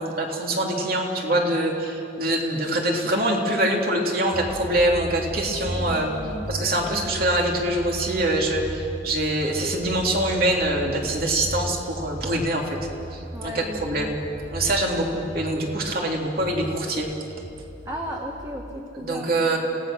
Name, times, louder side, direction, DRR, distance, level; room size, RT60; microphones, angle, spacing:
voice 1, 0.0-6.1 6.5-12.8 13.1-14.1 14.5-17.1 18.9-19.6, right 1 dB, 50° right, 0 dB, 3.0 m, -24 dB
sound 1, 4.3-18.5, right 1 dB, 70° right, 2.8 m, -37 dB
voice 2, 5.9-7.1 13.3-14.1 17.8-19.3, equal, 20° right, 0 dB, 1.4 m, -35 dB
28.0 x 18.0 x 6.4 m, 2.7 s
head